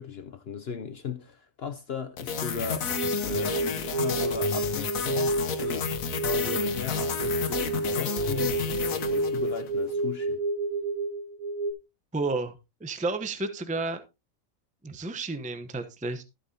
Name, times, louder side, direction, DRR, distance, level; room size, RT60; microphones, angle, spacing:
voice 1, 0.0-2.9 3.2-3.6 3.9-8.6 9.1-10.4, left 6 dB, 55° left, 0.9 m, -37 dB
sound 1, 2.2-9.7, left 6 dB, 75° left, 1.4 m, -32 dB
sound 2, 2.9-11.7, right 2 dB, 80° right, 1.7 m, -30 dB
sound 3, 7.7-10.2, left 2 dB, 35° left, 1.7 m, -45 dB
voice 2, 12.1-12.5 12.8-14.0 14.8-16.2, right 3 dB, 5° right, 0.7 m, -31 dB
13.0 x 8.3 x 2.8 m
omnidirectional pair, 1.4 m